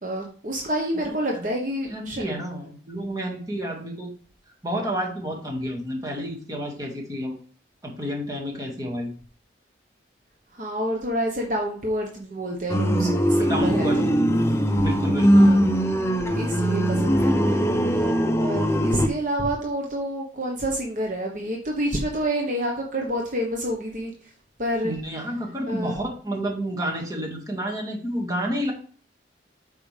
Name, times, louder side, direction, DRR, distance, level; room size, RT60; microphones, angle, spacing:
voice 1, 0.0-2.2 10.5-14.1 15.3-15.6 16.3-24.1 24.6-24.9 25.7-25.9, right 1 dB, 45° right, 1 dB, 1.2 m, -28 dB
voice 2, 1.9-4.1 4.6-7.3 7.8-9.1 13.4-14.3 14.8-15.5 24.8-28.7, equal, 20° right, -1 dB, 2.0 m, -30 dB
sound 1, 12.7-19.1, equal, 15° left, 0.7 m, -20 dB
8.7 x 6.0 x 3.4 m, 0.42 s
head